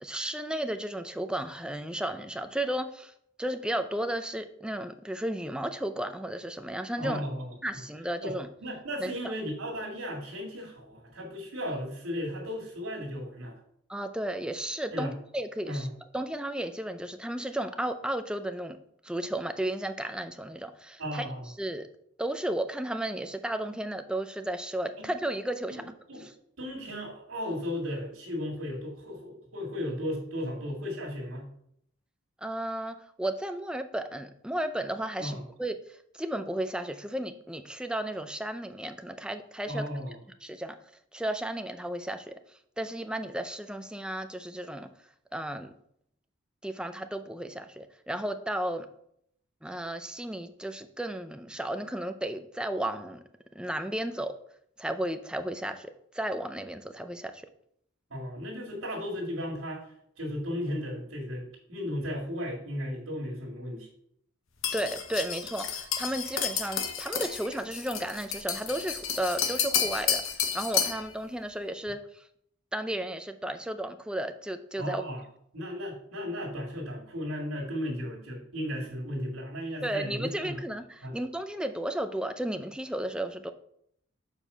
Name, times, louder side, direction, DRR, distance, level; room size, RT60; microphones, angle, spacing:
voice 1, 0.0-3.1 3.4-7.2 7.6-8.5 9.0-9.3 13.9-15.9 16.1-18.8 19.0-21.3 21.6-21.9 22.2-25.8 26.2-26.3 32.4-39.8 40.4-40.8 41.1-42.4 42.8-44.9 45.3-45.7 46.6-48.9 49.6-53.2 53.5-54.3 54.8-57.4 64.7-72.2 72.7-75.0 79.8-83.5, right 1 dB, 5° right, 8 dB, 0.4 m, -34 dB
voice 2, 7.0-7.8 8.2-13.6 14.9-15.1 15.6-15.9 21.0-21.5 25.0-25.1 25.7-26.3 26.6-31.5 35.2-35.4 39.7-40.2 58.1-63.9 74.8-75.2 75.5-80.6 81.0-81.2, equal, 85° right, -3 dB, 2.1 m, -35 dB
sound 1, 64.6-71.1, left 7 dB, 70° left, 0.9 m, -31 dB
7.0 x 4.4 x 5.4 m, 0.70 s
head